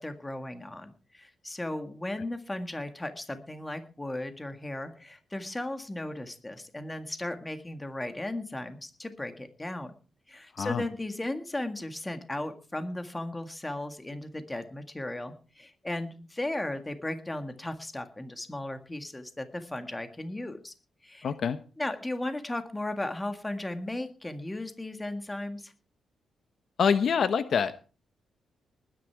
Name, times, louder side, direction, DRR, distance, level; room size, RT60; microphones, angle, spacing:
voice 1, 0.0-9.9 10.3-20.7 21.0-21.3 21.8-25.7, left 1 dB, 15° left, 8 dB, 1.8 m, -36 dB
voice 2, 21.2-21.6 26.8-27.8, left 6 dB, 55° left, 11 dB, 0.9 m, -25 dB
20.0 x 10.0 x 4.6 m, 0.37 s
cardioid pair, 130°, 0 cm